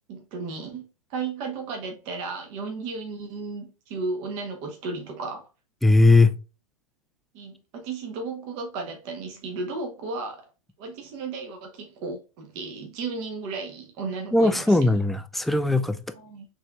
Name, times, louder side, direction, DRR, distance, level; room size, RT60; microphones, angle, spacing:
voice 1, 0.1-0.8 1.1-5.5 7.3-10.5 10.8-15.0 16.1-16.4, right 4 dB, 40° right, 1.0 m, -34 dB
voice 2, 5.8-6.3 14.3-16.0, left 2 dB, ahead, 0.3 m, -19 dB
6.5 x 3.2 x 2.3 m
figure-of-eight pair, 100°, 18 cm